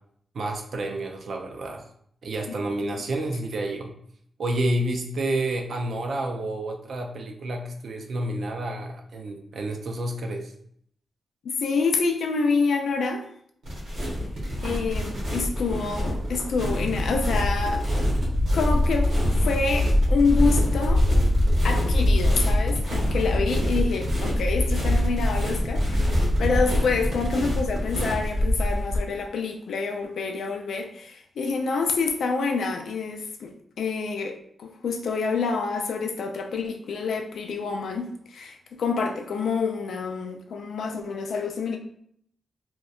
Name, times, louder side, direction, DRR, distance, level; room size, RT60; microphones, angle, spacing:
voice 1, 0.3-1.8 2.2-3.9 4.4-10.5, right 1 dB, 65° right, 3 dB, 0.4 m, -29 dB
voice 2, 11.4-13.3 14.6-18.1 18.5-19.2 19.4-21.1 21.6-41.8, left 4 dB, 80° left, 4 dB, 0.3 m, -27 dB
sound 1, 13.6-29.0, left 1 dB, 80° right, 0.9 m, -24 dB
2.7 x 2.1 x 2.3 m, 0.66 s
cardioid pair, 95°, 0 cm